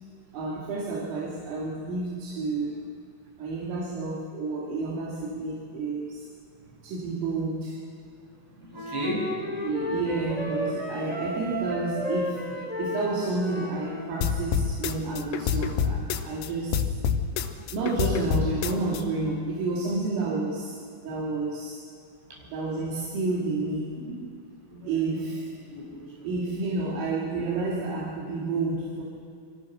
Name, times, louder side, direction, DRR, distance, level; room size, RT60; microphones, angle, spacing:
voice 1, 0.3-2.8 3.4-6.2 6.8-7.8 9.6-12.4 12.8-16.8 17.7-20.8 21.0-21.8 22.5-23.9 24.8-25.4 26.2-29.0, right 3 dB, 75° right, -5 dB, 5.4 m, -30 dB
voice 2, 8.6-9.4 24.0-24.2 24.7-25.3 25.7-26.2, equal, 55° right, -3 dB, 9.4 m, -34 dB
Wind instrument woodwind instrument, 8.7-14.1, left 1 dB, 15° left, 1.8 m, -33 dB
sound 1, 14.2-16.5 16.7-19.0, left 7 dB, 75° left, 3.1 m, -27 dB
28.0 x 25.5 x 6.5 m, 2.5 s
omnidirectional pair, 6.0 m